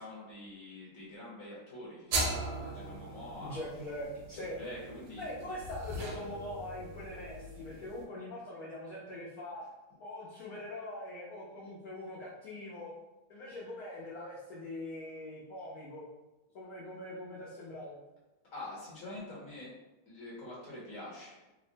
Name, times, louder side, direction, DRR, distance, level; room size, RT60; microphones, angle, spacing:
voice 1, 0.0-3.6 4.3-5.2 18.5-19.8 20.1-21.5, left 1 dB, 50° left, -6 dB, 1.2 m, -45 dB
sound 1, 2.1-8.0, right 2 dB, 85° right, 1.5 m, -39 dB
voice 2, 3.4-4.6 5.2-9.6 10.0-12.9 13.3-16.1 16.5-18.0, left 1 dB, 90° left, -6 dB, 0.8 m, -42 dB
3.5 x 2.1 x 2.6 m, 1.0 s
omnidirectional pair, 2.3 m